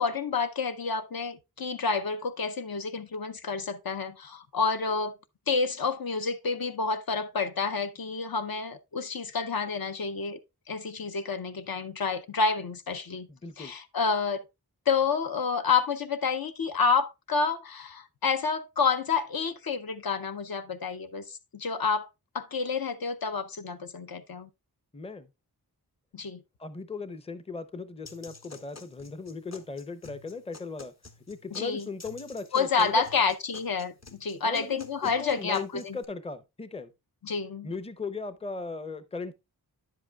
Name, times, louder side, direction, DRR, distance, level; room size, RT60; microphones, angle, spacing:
voice 1, 0.0-5.1 5.5-10.4 10.7-13.3 13.6-14.4 14.9-22.1 22.3-24.5 26.1-26.4 31.5-31.8 32.5-36.0 37.2-37.7, left 5 dB, 65° left, 0.6 m, -29 dB
voice 2, 13.3-13.7 24.9-25.3 26.6-30.9 31.3-33.0 34.4-36.9 37.6-39.3, left 4 dB, 15° left, 0.5 m, -38 dB
sound 1, 28.1-36.0, left 3 dB, 45° left, 0.9 m, -50 dB
9.7 x 7.6 x 2.3 m
wide cardioid pair, 65°, 39 cm